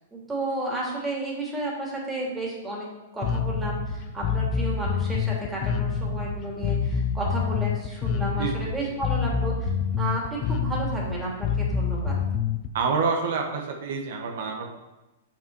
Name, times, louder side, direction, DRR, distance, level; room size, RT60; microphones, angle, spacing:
voice 1, 0.1-2.9 3.1-9.7 10.0-12.2, right 1 dB, 10° right, -4 dB, 2.6 m, -32 dB
Bass guitar, 3.2-12.7, left 6 dB, 35° left, 0.6 m, -27 dB
voice 2, 12.7-14.8, right 5 dB, 70° right, 2 dB, 1.1 m, -27 dB
6.9 x 5.7 x 4.6 m, 1.0 s
hypercardioid pair, 135°, 0 cm